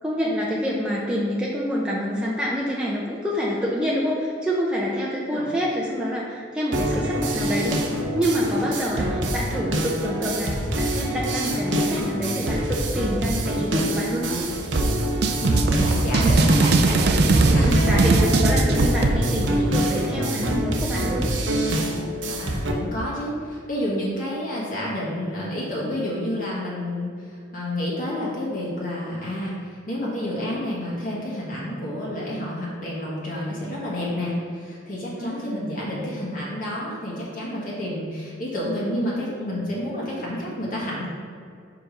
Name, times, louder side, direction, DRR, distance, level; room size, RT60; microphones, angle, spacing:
voice 1, 0.0-7.9 8.1-14.3 17.5-21.3 35.2-35.7, equal, 5° right, -5 dB, 0.6 m, -27 dB
sound 1, 6.7-22.7, right 1 dB, 85° right, 0.8 m, -26 dB
sound 2, 14.8-19.2, right 2 dB, 60° right, 0.5 m, -19 dB
voice 2, 15.4-18.3 18.7-18.8 22.3-27.1 27.5-29.6 29.9-41.1, left 1 dB, 50° left, -5 dB, 1.7 m, -29 dB
5.1 x 5.0 x 5.2 m, 2.3 s
head